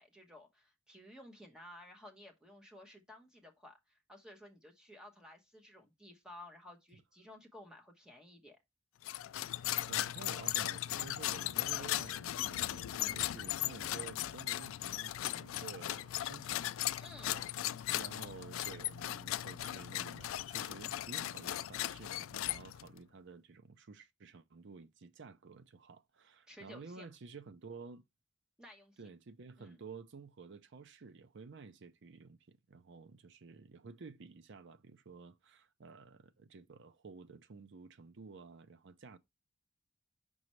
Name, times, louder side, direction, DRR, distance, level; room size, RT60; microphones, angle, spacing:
voice 1, 0.0-8.6 17.0-17.4 26.5-27.1 28.6-29.0 29.6-29.8, left 1 dB, 5° right, 1.1 m, -55 dB
sound 1, 9.0-23.0, left 14 dB, 70° left, 0.3 m, -37 dB
voice 2, 9.9-17.5 17.9-28.0 29.0-39.2, right 4 dB, 60° right, 0.6 m, -52 dB
6.0 x 5.5 x 3.1 m
head